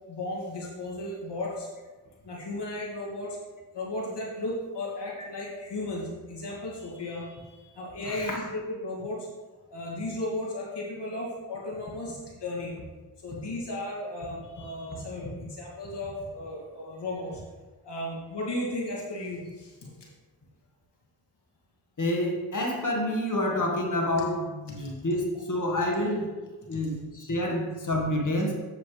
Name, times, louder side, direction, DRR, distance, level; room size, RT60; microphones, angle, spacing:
voice 1, 0.1-1.7 2.2-3.4 3.7-9.3 9.7-12.8 13.2-17.4 17.8-19.9, left 1 dB, 75° left, -4 dB, 2.7 m, -35 dB
voice 2, 22.0-26.3 26.7-28.5, left 1 dB, 45° left, 0 dB, 2.0 m, -28 dB
8.7 x 6.9 x 3.5 m, 1.3 s
cardioid pair, 45°, 42 cm